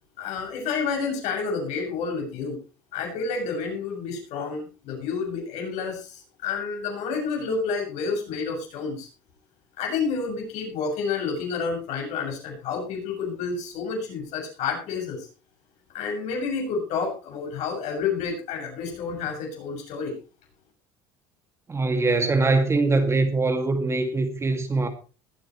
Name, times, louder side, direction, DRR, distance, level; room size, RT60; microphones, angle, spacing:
voice 1, 0.2-2.6 2.9-9.1 9.8-15.3 15.9-20.1, left 5 dB, 65° left, 7.1 m, -29 dB
voice 2, 21.7-24.9, right 3 dB, 20° right, 2.2 m, -22 dB
21.0 x 8.7 x 3.1 m
supercardioid pair, 100°, 12 cm